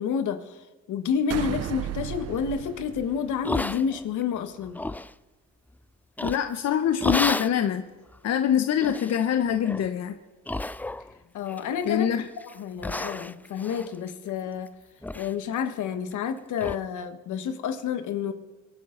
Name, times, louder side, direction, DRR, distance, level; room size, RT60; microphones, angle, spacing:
voice 1, 0.0-4.8 11.3-14.7 15.1-18.3, left 7 dB, 80° left, 9 dB, 1.4 m, -30 dB
sound 1, 1.3-3.9, right 10 dB, 55° right, 0.8 m, -35 dB
sound 2, 3.4-4.2 4.6-5.1 6.2-6.6 7.0-7.6 8.1-8.2 8.8-9.2 9.6-9.9 10.5-11.2 11.5-12.0 12.4-12.6 12.8-14.7 15.0-15.3 15.6-15.7 16.1-16.2 16.6-16.8, left 2 dB, 5° left, 0.3 m, -31 dB
voice 2, 6.2-7.8 8.2-10.1 11.8-12.2, left 9 dB, 60° left, 8 dB, 0.9 m, -24 dB
24.0 x 10.0 x 3.9 m, 1.2 s
cardioid pair, 90°, 30 cm